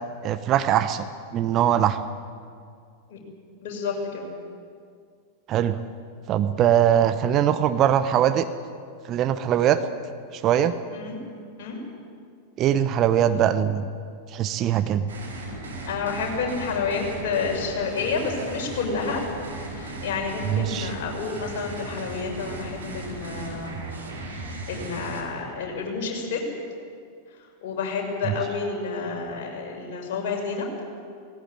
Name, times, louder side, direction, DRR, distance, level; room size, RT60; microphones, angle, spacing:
voice 1, 0.2-1.1 1.3-2.0 5.5-5.8 6.3-8.5 9.1-9.8 10.3-10.7 12.6-13.9 14.3-15.1 20.4-20.9 28.2-28.4, right 10 dB, 35° right, 10 dB, 0.9 m, -21 dB
voice 2, 3.6-4.3 10.9-11.1 11.6-11.8 15.8-19.2 19.7-23.9 24.7-26.4 27.6-30.7, left 5 dB, 50° left, 0 dB, 6.2 m, -29 dB
sound 1, 15.1-25.2, right 2 dB, 65° right, 4.0 m, -36 dB
18.5 x 17.0 x 9.7 m, 2.2 s
figure-of-eight pair, 90°, 0 cm